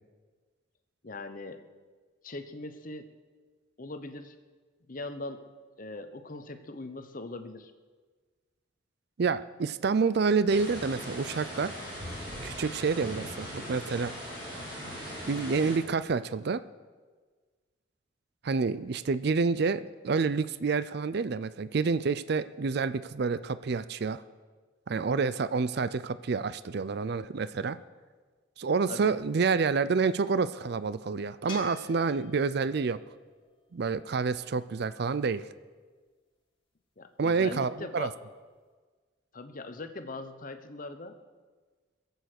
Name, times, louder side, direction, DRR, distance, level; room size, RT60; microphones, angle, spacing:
voice 1, 1.0-1.6 2.2-3.1 3.8-4.4 4.9-5.5 5.8-7.7 15.3-15.6 25.0-25.1 28.6-29.1 37.0-38.1 39.3-41.1, left 2 dB, 45° left, 9 dB, 0.9 m, -41 dB
voice 2, 9.2-11.7 12.4-14.1 15.3-16.6 18.4-24.2 24.9-27.8 28.6-33.0 33.7-35.4 37.2-38.1, right 4 dB, 55° right, 15 dB, 0.4 m, -28 dB
sound 1, 10.5-15.8, equal, 25° right, 4.5 m, -39 dB
sound 2, 31.5-34.7 38.0-38.1, left 5 dB, 25° left, 1.9 m, -49 dB
21.5 x 8.1 x 6.5 m, 1.5 s
head